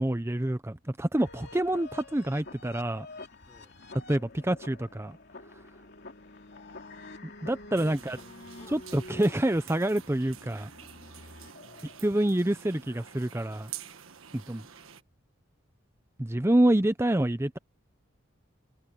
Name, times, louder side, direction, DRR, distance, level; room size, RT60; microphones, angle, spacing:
voice 1, 0.0-3.1 4.1-5.2 7.4-8.2 8.7-10.7 12.0-13.7 14.3-14.6 16.2-17.6, right 1 dB, 10° right, 0.6 m, -27 dB
sound 1, 1.2-12.1, left 2 dB, 55° left, 3.0 m, -48 dB
voice 2, 7.7-8.8 9.2-9.7 11.6-12.0, left 1 dB, 20° left, 4.9 m, -56 dB
sound 2, 7.8-15.0, right 9 dB, 80° right, 1.4 m, -48 dB
head